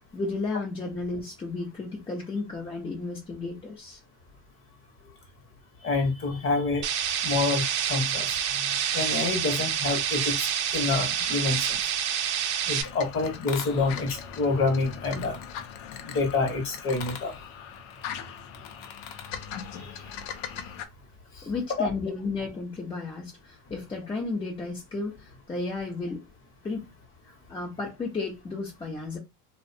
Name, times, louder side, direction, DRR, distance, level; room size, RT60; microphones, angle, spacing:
voice 1, 0.1-4.0 21.4-26.2 26.6-26.9 27.2-29.2, left 3 dB, 15° left, 0.5 m, -33 dB
voice 2, 5.8-6.8 7.2-8.7 8.9-10.5 10.7-11.8 12.7-15.4 16.0-17.3 21.8-21.9, left 3 dB, 30° left, 0.9 m, -27 dB
sound 1, 6.8-12.8, right 9 dB, 60° right, 0.6 m, -27 dB
sound 2, 12.8-20.9, left 8 dB, 55° left, 0.6 m, -39 dB
2.6 x 2.1 x 2.6 m
supercardioid pair, 135°, 45 cm